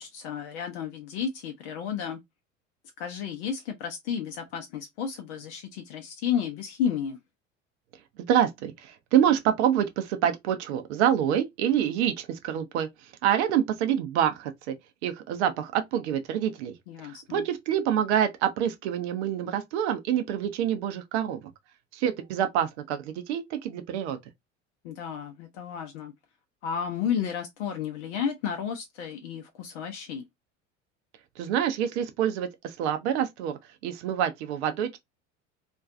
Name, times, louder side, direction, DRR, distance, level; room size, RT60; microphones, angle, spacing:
voice 1, 0.0-2.2 3.0-7.2 16.9-17.5 24.8-26.1 26.6-30.2, left 8 dB, 65° left, 0.6 m, -32 dB
voice 2, 8.3-14.8 15.0-16.7 17.0-21.5 21.9-24.2 31.4-35.0, right 9 dB, 65° right, 0.6 m, -27 dB
2.5 x 2.2 x 2.4 m
figure-of-eight pair, 70°, 37 cm